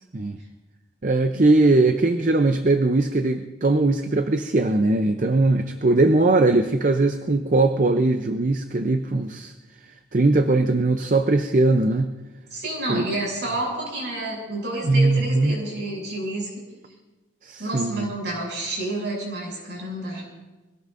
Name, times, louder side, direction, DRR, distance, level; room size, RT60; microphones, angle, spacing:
voice 1, 1.0-9.5 10.1-12.1 12.9-13.1 14.8-15.6 17.4-18.1, right 2 dB, 40° right, 7 dB, 0.6 m, -20 dB
voice 2, 12.5-16.6 17.6-20.3, right 2 dB, 60° right, -2 dB, 6.8 m, -29 dB
25.0 x 18.0 x 2.6 m, 1.2 s
head